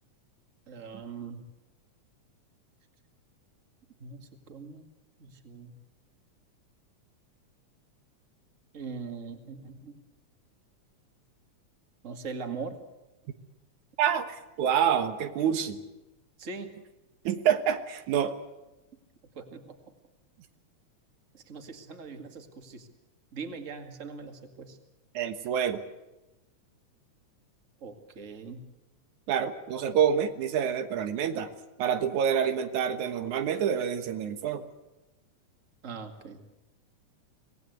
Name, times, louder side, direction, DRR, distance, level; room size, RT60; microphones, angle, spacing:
voice 1, 0.7-1.5 4.0-4.9 5.2-5.7 8.7-10.0 12.0-12.8 16.4-16.7 19.3-19.8 21.3-22.9 23.3-24.8 27.8-28.6 35.8-36.4, right 4 dB, 30° right, 5 dB, 2.1 m, -41 dB
voice 2, 14.0-15.8 17.2-18.3 25.1-25.8 29.3-31.5 31.8-34.6, right 8 dB, 90° right, 8 dB, 2.7 m, -27 dB
25.0 x 19.0 x 8.1 m, 1.0 s
omnidirectional pair, 3.3 m